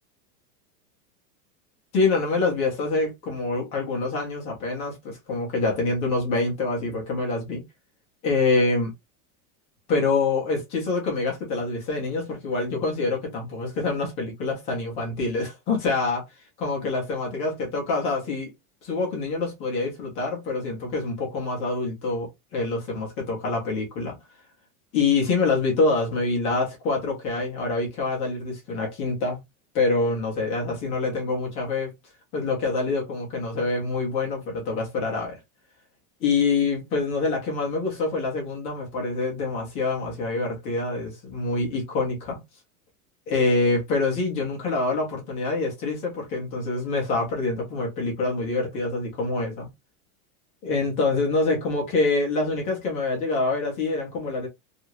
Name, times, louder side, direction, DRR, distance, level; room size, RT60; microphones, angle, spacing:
voice 1, 1.9-7.6 8.2-8.9 9.9-18.5 18.8-24.2 24.9-29.4 29.7-31.9 32.3-35.4 36.2-42.4 43.3-49.7 50.6-54.5, left 3 dB, 15° left, 0.4 m, -26 dB
2.7 x 2.4 x 2.9 m
supercardioid pair, 175°, 44 cm